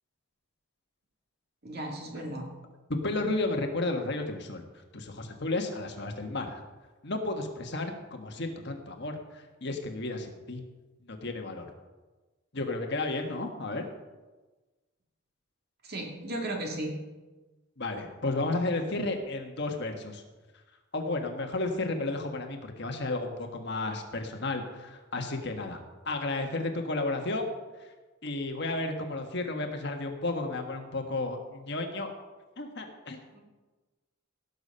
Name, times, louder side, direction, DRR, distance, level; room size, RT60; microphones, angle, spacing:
voice 1, 1.6-2.5 15.8-17.0 33.3-33.4, right 1 dB, 50° right, 1 dB, 2.4 m, -35 dB
voice 2, 2.9-4.6 4.9-6.6 7.0-10.6 11.0-11.7 12.5-13.9 17.8-20.2 20.9-25.8 26.0-27.5 28.2-32.1 32.6-33.2, left 2 dB, 55° left, 4 dB, 1.4 m, -32 dB
17.0 x 6.7 x 5.6 m, 1.2 s
head